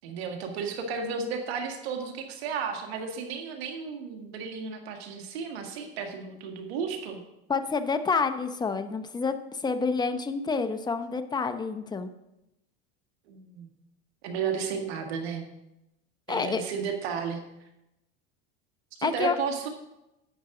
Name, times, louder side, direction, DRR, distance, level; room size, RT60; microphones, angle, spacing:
voice 1, 0.0-7.2 13.3-13.7 14.2-15.5 16.3-17.4 19.0-19.7, right 6 dB, 85° right, 4 dB, 1.9 m, -33 dB
voice 2, 7.5-12.1 16.3-16.6 19.0-19.3, left 4 dB, 15° left, 8 dB, 0.7 m, -28 dB
11.0 x 8.7 x 3.8 m, 0.89 s
supercardioid pair, 115°, 31 cm